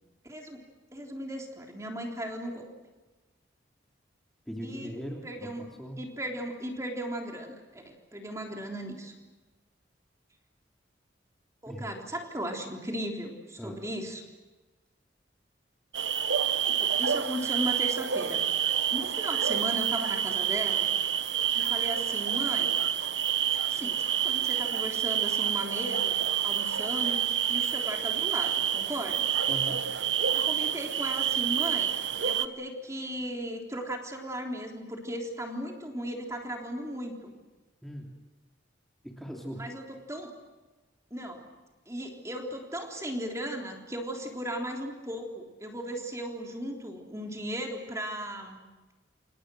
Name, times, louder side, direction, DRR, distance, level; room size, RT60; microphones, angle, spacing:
voice 1, 0.2-0.6 0.9-2.6 4.6-4.9 5.2-5.7 6.0-9.1 11.6-14.2 16.7-18.4 18.9-20.9 21.5-22.7 23.5-29.3 30.3-31.9 32.2-37.3 39.5-40.3 41.1-41.4 41.9-48.6, equal, 15° right, 1 dB, 3.6 m, -36 dB
voice 2, 4.5-6.0 11.7-11.9 13.6-13.8 29.5-29.8 37.8-38.1 39.0-39.7, equal, ahead, -1 dB, 3.1 m, -39 dB
sound 1, 15.9-32.5, right 9 dB, 75° right, 1.0 m, -28 dB
29.5 x 27.5 x 6.4 m, 1.2 s
head